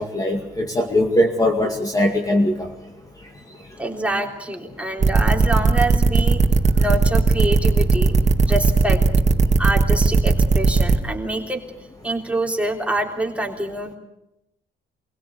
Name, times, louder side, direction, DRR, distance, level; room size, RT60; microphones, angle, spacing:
voice 1, 0.0-2.7, left 1 dB, 15° left, 2 dB, 2.4 m, -20 dB
voice 2, 3.8-6.4 6.8-9.0 9.6-11.6 12.0-13.9, right 1 dB, 5° right, 1 dB, 3.6 m, -26 dB
sound 1, 5.0-11.0, right 4 dB, 35° right, 2.0 m, -16 dB
25.0 x 16.5 x 8.4 m, 0.84 s
cardioid pair, 90°, 20 cm